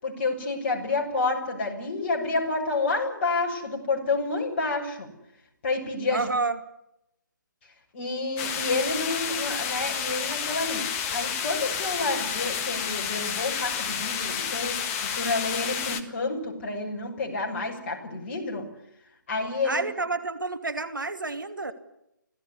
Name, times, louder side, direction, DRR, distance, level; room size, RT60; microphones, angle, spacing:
voice 1, 0.0-5.1 5.6-6.3 7.9-10.8 11.1-18.7 19.3-19.8 21.7-21.8, left 3 dB, 35° left, 1 dB, 7.2 m, -29 dB
voice 2, 6.1-6.6 19.6-21.7, right 3 dB, 80° right, 10 dB, 2.8 m, -29 dB
sound 1, 8.4-16.0, left 7 dB, 20° left, 1.6 m, -30 dB
25.5 x 17.0 x 9.9 m, 0.82 s
figure-of-eight pair, 145°, 11 cm